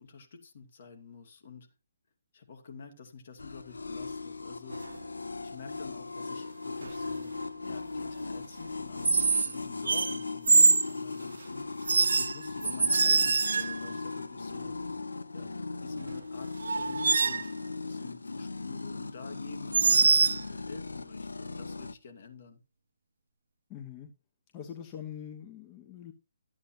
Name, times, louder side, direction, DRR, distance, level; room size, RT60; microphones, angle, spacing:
voice 1, 0.0-1.7 2.3-4.8 5.4-11.6 12.2-14.8 15.3-22.6, left 5 dB, 50° left, 2.3 m, -48 dB
sound 1, 3.4-21.9, left 3 dB, 75° left, 0.6 m, -38 dB
sound 2, 4.7-5.0 6.8-7.1 9.0-9.5 9.9-10.9 11.9-13.9 16.1-16.2 16.6-17.5 19.7-20.4, right 4 dB, 65° right, 0.6 m, -24 dB
voice 2, 23.7-24.1 24.5-26.1, left 9 dB, 25° left, 1.2 m, -43 dB
12.5 x 8.8 x 2.8 m
figure-of-eight pair, 140°, 0 cm